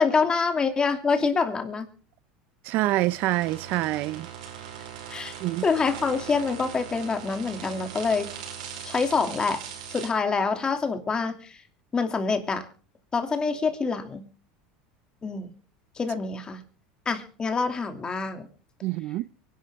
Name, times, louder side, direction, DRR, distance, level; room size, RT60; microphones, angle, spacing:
voice 1, 0.0-1.9 5.1-5.4 5.6-8.3 8.8-9.6 9.9-11.6 11.9-12.7 13.1-14.3 15.2-15.5 16.0-16.6 17.1-18.5, left 4 dB, 20° left, 2.7 m, -26 dB
voice 2, 2.6-4.3 5.4-5.6 18.8-19.3, right 17 dB, 55° right, 0.6 m, -26 dB
sound 1, 2.9-10.1, right 8 dB, 90° right, 4.9 m, -40 dB
24.0 x 11.5 x 3.6 m
supercardioid pair, 120°, 4 cm